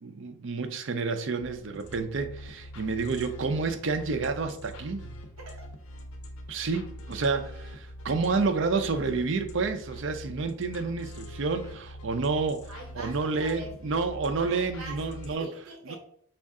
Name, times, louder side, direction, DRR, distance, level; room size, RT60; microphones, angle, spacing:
voice 1, 0.0-5.1 6.5-12.6 12.9-15.5, right 4 dB, 60° right, 0.5 m, -29 dB
sound 1, 1.4-15.4, equal, 90° left, 0.7 m, -43 dB
voice 2, 5.4-5.7 12.7-13.7 14.4-15.0 15.3-16.0, right 2 dB, 80° right, 0.9 m, -43 dB
5.3 x 2.5 x 3.6 m
head